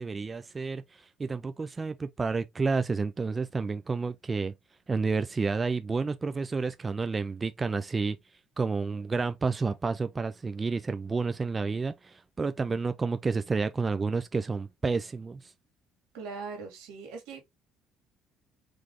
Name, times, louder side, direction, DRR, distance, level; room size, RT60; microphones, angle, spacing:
voice 1, 0.0-4.5 4.9-8.2 8.6-15.5, right 4 dB, 25° right, 0.4 m, -30 dB
voice 2, 16.1-17.4, right 4 dB, 85° right, 2.1 m, -40 dB
4.0 x 3.2 x 2.9 m
supercardioid pair, 90°, 0 cm